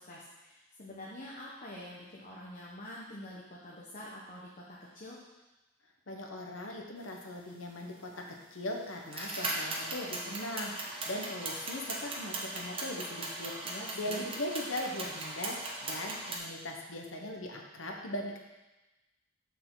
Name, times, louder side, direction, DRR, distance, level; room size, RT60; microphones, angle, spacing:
voice 1, 0.0-5.2 13.6-14.3, left 1 dB, 40° left, -5 dB, 1.1 m, -46 dB
voice 2, 6.1-18.4, left 1 dB, 70° left, 1 dB, 1.1 m, -39 dB
sound 1, 8.1-8.2 9.0-16.4, right 2 dB, 25° right, 1.1 m, -38 dB
7.1 x 6.6 x 3.9 m, 1.1 s
head